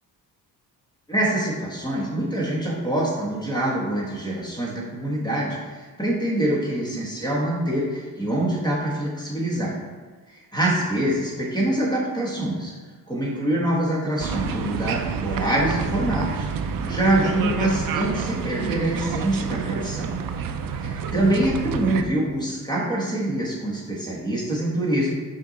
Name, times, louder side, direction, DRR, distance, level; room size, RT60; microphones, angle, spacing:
voice 1, 1.1-9.8 10.3-12.8 13.1-20.1 20.8-25.1, right 1 dB, 10° left, -4 dB, 1.3 m, -25 dB
sound 1, 14.2-22.0, right 6 dB, 65° right, 0.6 m, -29 dB
5.9 x 5.0 x 4.0 m, 1.5 s
wide cardioid pair, 165°, 37 cm